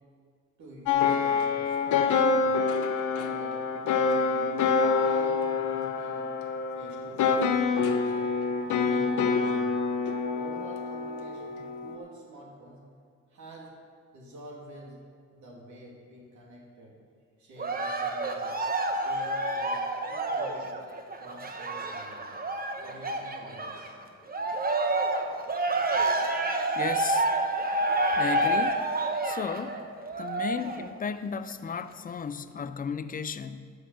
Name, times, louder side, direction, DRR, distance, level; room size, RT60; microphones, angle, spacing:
voice 1, 0.6-2.6 3.1-4.6 5.0-6.3 6.7-8.3 8.8-9.8 10.3-12.8 13.3-13.7 14.1-15.0 15.3-17.0 17.4-18.5 18.9-20.7 21.2-22.3 22.8-24.0, right 1 dB, 70° right, 2.9 m, -48 dB
sound 1, 0.9-12.0, left 5 dB, 80° left, 1.0 m, -26 dB
Cheering, 17.6-23.9 24.3-30.9 31.5-31.6, right 2 dB, 30° right, 1.1 m, -29 dB
voice 2, 26.8-27.3 28.2-28.8 29.2-29.8 30.2-33.7, left 6 dB, 30° left, 0.5 m, -34 dB
12.5 x 5.6 x 7.0 m
cardioid pair, 90°, 30 cm